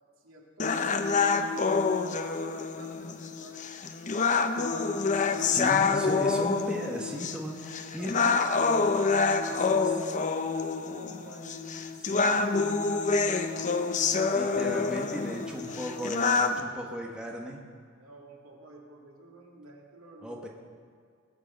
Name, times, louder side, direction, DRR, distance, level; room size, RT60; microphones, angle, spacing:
voice 1, 0.2-3.7 4.3-7.0 7.6-8.2 9.4-10.4 10.8-11.8 12.3-16.4 18.0-20.5, right 2 dB, 80° right, -1 dB, 2.5 m, -51 dB
sound 1, 0.6-16.6, left 4 dB, 35° left, 0.6 m, -27 dB
voice 2, 5.4-8.1 9.5-9.9 12.0-12.4 14.3-17.6 20.2-20.5, equal, 5° right, -1 dB, 1.3 m, -36 dB
19.5 x 6.6 x 7.5 m, 2.1 s
head